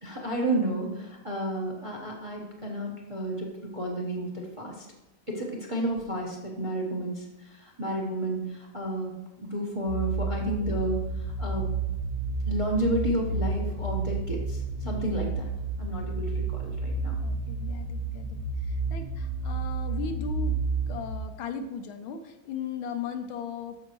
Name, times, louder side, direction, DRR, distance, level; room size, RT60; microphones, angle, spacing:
voice 1, 0.0-4.9 5.3-11.0 11.4-11.7 12.5-15.5 15.8-17.1, right 1 dB, 20° right, -1 dB, 1.0 m, -31 dB
sound 1, 9.9-21.2, right 4 dB, 55° right, 1.8 m, -31 dB
voice 2, 17.2-20.6 20.9-23.8, left 6 dB, 80° left, 6 dB, 1.6 m, -37 dB
13.5 x 5.6 x 3.1 m, 1.0 s
omnidirectional pair, 2.3 m